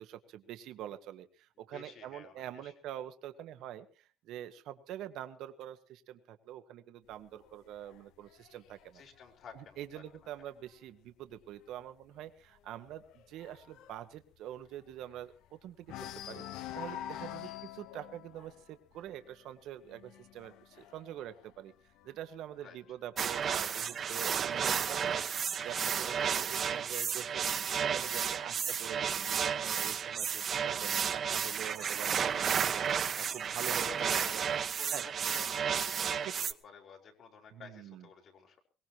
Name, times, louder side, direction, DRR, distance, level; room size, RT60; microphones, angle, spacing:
voice 1, 0.0-9.0 9.5-16.4 16.7-21.7 22.0-27.5 27.7-34.4 34.9-35.0 36.2-36.3 37.5-38.1, right 11 dB, 75° right, 8 dB, 1.4 m, -45 dB
voice 2, 1.6-2.7 8.9-10.0 17.4-17.6 22.6-22.8 28.5-28.7 33.8-38.6, left 6 dB, 55° left, 2 dB, 4.3 m, -52 dB
sound 1, 7.1-10.7 11.1-11.4 11.7-11.8 12.2-15.5 15.8-22.4 23.2-24.2, left 12 dB, 80° left, 1.0 m, -47 dB
sound 2, 23.2-36.5, right 7 dB, 45° right, 0.9 m, -32 dB
22.5 x 18.5 x 3.0 m, 0.37 s
cardioid pair, 110°, 0 cm